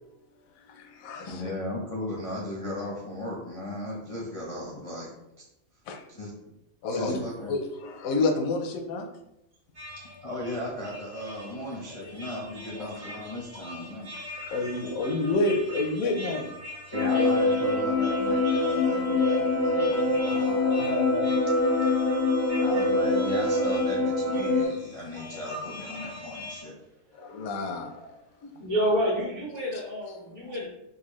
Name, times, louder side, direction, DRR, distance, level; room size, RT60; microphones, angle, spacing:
voice 1, 0.6-1.5 5.9-6.0 6.8-9.1 12.0-12.1 12.8-12.9 14.4-16.5 20.2-21.4 27.1-28.0 28.4-28.5 29.7-29.8 30.0-30.7, left 2 dB, 80° left, 5 dB, 1.0 m, -30 dB
voice 2, 1.3-5.1 6.1-6.3 6.9-7.5 10.0-14.1 16.9-20.4 22.6-26.7, left 1 dB, 40° left, -5 dB, 0.5 m, -36 dB
sound 1, 9.7-26.6, left 1 dB, 85° right, 1.6 m, -42 dB
sound 2, 16.9-24.6, left 2 dB, 25° right, 0.5 m, -24 dB
voice 3, 28.6-30.7, equal, 60° right, -9 dB, 1.5 m, -28 dB
4.1 x 2.3 x 3.0 m, 0.85 s
omnidirectional pair, 1.4 m